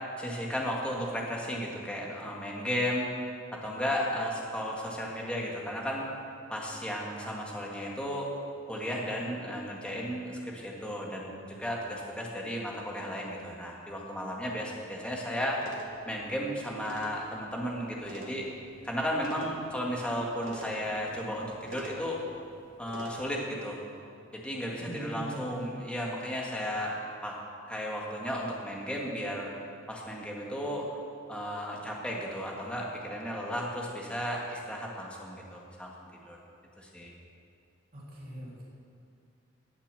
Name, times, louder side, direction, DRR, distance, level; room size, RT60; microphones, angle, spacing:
voice 1, 0.2-3.1 3.5-6.1 6.5-8.3 8.7-11.3 11.6-18.4 18.8-22.2 22.8-23.8 24.3-27.4 27.7-29.5 29.9-30.9 31.3-35.9 36.3-36.4 36.8-37.1, equal, 5° left, -2 dB, 1.8 m, -34 dB
sound 1, 15.6-23.2, right 1 dB, 65° right, 1.8 m, -48 dB
voice 2, 24.8-25.5 37.9-38.6, right 1 dB, 45° right, -7 dB, 3.4 m, -41 dB
18.0 x 7.2 x 6.9 m, 2.5 s
head